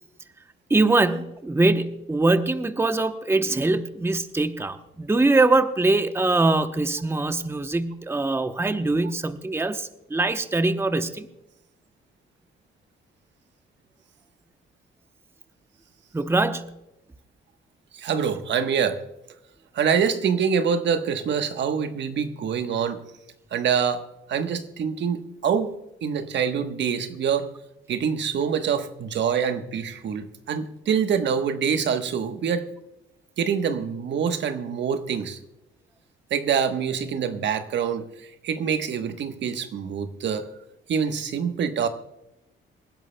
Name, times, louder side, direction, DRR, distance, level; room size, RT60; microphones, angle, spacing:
voice 1, 0.7-11.3 16.1-16.8, right 2 dB, 10° right, 9 dB, 0.8 m, -23 dB
voice 2, 17.9-19.0 19.7-23.0 23.5-24.0 24.3-25.7 26.0-27.5 27.9-32.7 33.4-35.4 36.3-40.5 40.9-41.9, right 7 dB, 65° right, 8 dB, 1.2 m, -25 dB
26.5 x 10.5 x 2.2 m, 0.89 s
cardioid pair, 90°, 20 cm